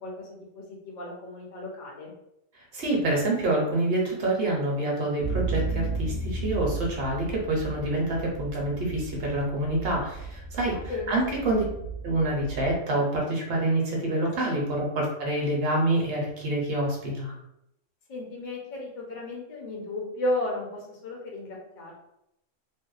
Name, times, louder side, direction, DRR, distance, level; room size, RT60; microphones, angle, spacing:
voice 1, 0.0-2.1 10.9-11.4 14.5-14.6 18.1-21.9, left 1 dB, 50° left, -2 dB, 0.6 m, -34 dB
voice 2, 2.7-10.8 11.1-11.6 12.0-17.3, right 1 dB, 60° right, -2 dB, 0.8 m, -27 dB
sound 1, 5.2-12.8, right 4 dB, 80° left, 1.0 m, -34 dB
2.6 x 2.1 x 2.3 m, 0.82 s
omnidirectional pair, 1.3 m